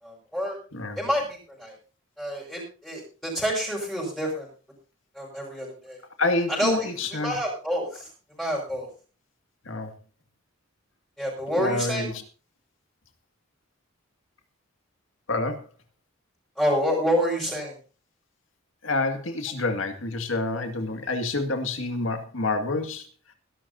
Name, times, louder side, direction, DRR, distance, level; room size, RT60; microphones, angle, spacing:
voice 1, 0.0-0.6 1.0-1.7 2.2-4.5 5.1-6.0 6.5-8.1 8.4-8.9 11.2-12.2 16.6-17.8, equal, 5° left, -4 dB, 5.6 m, -28 dB
voice 2, 6.2-7.4 9.7-9.9 11.6-12.1 15.3-15.6 18.8-23.1, left 2 dB, 70° left, 5 dB, 2.2 m, -28 dB
21.5 x 12.0 x 2.8 m, 0.36 s
head